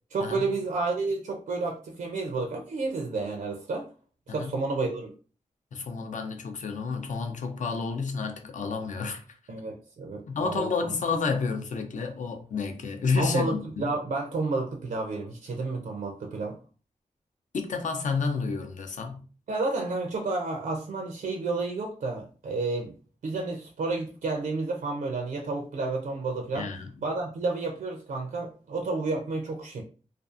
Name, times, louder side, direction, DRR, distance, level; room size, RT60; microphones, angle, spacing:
voice 1, 0.1-3.9 4.3-5.1 9.5-10.9 13.2-16.6 19.5-22.9 23.2-26.7 27.0-29.8, right 3 dB, 80° right, 0.5 m, -31 dB
voice 2, 5.7-9.2 10.3-13.9 17.5-19.2 26.5-26.9, left 4 dB, 65° left, 0.5 m, -30 dB
2.5 x 2.3 x 2.4 m
wide cardioid pair, 90°, 14 cm